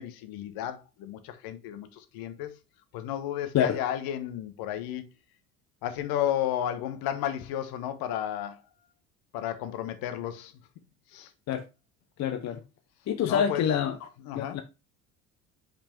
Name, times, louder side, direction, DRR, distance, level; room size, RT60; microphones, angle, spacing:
voice 1, 0.0-2.6 2.9-5.0 5.8-8.6 9.3-10.5 11.1-11.3 13.3-13.7 14.2-14.6, left 11 dB, 55° left, 1.3 m, -33 dB
voice 2, 12.2-12.6 13.1-14.0 14.3-14.6, left 8 dB, 40° left, 0.9 m, -26 dB
5.4 x 5.3 x 4.4 m
hypercardioid pair, 70°, 43 cm